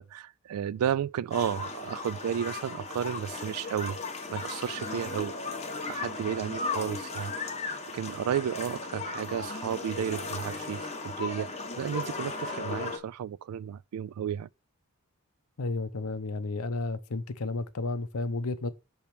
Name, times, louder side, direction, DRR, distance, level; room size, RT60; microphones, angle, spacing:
voice 1, 0.0-4.0 4.3-5.6 5.9-7.3 7.9-11.5 11.8-14.5, right 9 dB, 80° right, 0.3 m, -33 dB
sound 1, 1.3-13.0, left 3 dB, 30° left, 1.2 m, -36 dB
voice 2, 15.6-18.7, left 3 dB, 75° left, 0.7 m, -32 dB
6.9 x 3.5 x 4.3 m
head